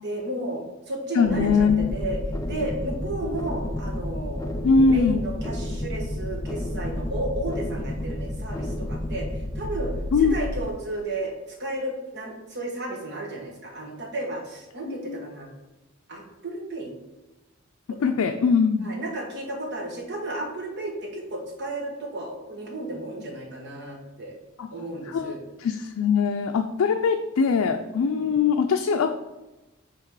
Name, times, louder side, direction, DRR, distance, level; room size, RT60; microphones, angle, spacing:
voice 1, 0.0-0.6 0.9-2.2 2.5-9.9 10.2-11.3 11.6-15.5 16.1-16.9 17.9-18.4 18.8-24.3 24.7-25.4 28.1-28.4, right 1 dB, 55° right, 0 dB, 1.3 m, -33 dB
voice 2, 1.2-1.9 4.6-5.2 10.1-10.4 14.9-15.2 18.0-18.9 24.6-24.7 25.1-25.3 25.6-29.2, left 5 dB, 85° left, 5 dB, 0.4 m, -22 dB
sound 1, 1.2-10.7, left 1 dB, 15° left, 0.4 m, -31 dB
5.7 x 3.6 x 4.7 m, 1.1 s
head